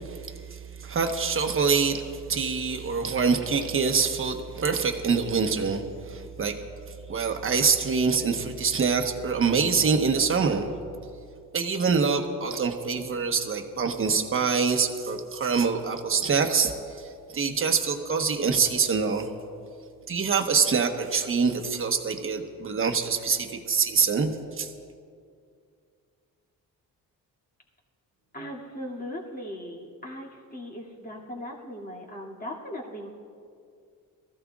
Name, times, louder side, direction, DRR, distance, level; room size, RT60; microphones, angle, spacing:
voice 1, 0.0-6.6 7.1-10.7 11.5-19.3 20.1-24.7, right 5 dB, 35° right, 5 dB, 1.1 m, -25 dB
voice 2, 28.3-33.1, left 1 dB, 25° left, -3 dB, 2.4 m, -38 dB
23.0 x 14.5 x 2.4 m, 2.3 s
cardioid pair, 135°, 35 cm